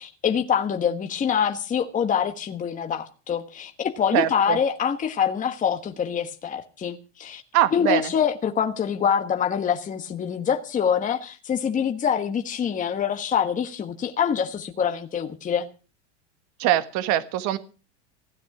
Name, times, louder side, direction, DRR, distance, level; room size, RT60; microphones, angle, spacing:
voice 1, 0.0-7.4 7.7-15.7, left 8 dB, 20° left, 5 dB, 1.3 m, -25 dB
voice 2, 4.1-4.6 7.5-8.1 16.6-17.6, right 13 dB, 55° right, 12 dB, 1.6 m, -22 dB
16.0 x 9.6 x 5.9 m, 0.36 s
supercardioid pair, 120°, 34 cm